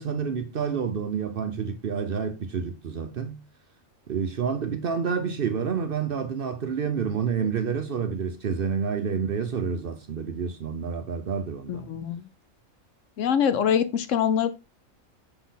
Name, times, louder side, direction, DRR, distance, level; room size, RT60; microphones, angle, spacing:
voice 1, 0.0-3.4 4.1-11.9, right 6 dB, 55° right, 0.7 m, -29 dB
voice 2, 11.7-12.3 13.2-14.5, left 8 dB, 70° left, 1.0 m, -24 dB
6.7 x 4.1 x 4.0 m
omnidirectional pair, 1.4 m